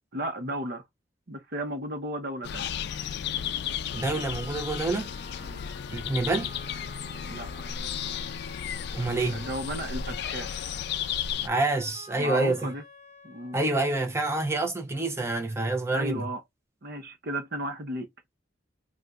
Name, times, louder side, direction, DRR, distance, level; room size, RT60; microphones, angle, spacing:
voice 1, 0.1-0.8 1.3-2.7 5.4-5.7 7.3-7.5 9.3-10.5 12.2-12.8 13.2-13.6 15.9-16.4 16.8-18.1, right 1 dB, 60° right, 0.9 m, -34 dB
sound 1, 2.4-11.5, left 8 dB, 60° left, 0.4 m, -34 dB
sound 2, 3.3-14.3, left 1 dB, 40° left, 0.9 m, -50 dB
voice 2, 3.9-5.1 5.9-6.5 8.9-9.5 11.4-12.7 13.5-16.3, right 2 dB, 15° right, 0.8 m, -27 dB
2.7 x 2.4 x 3.5 m
head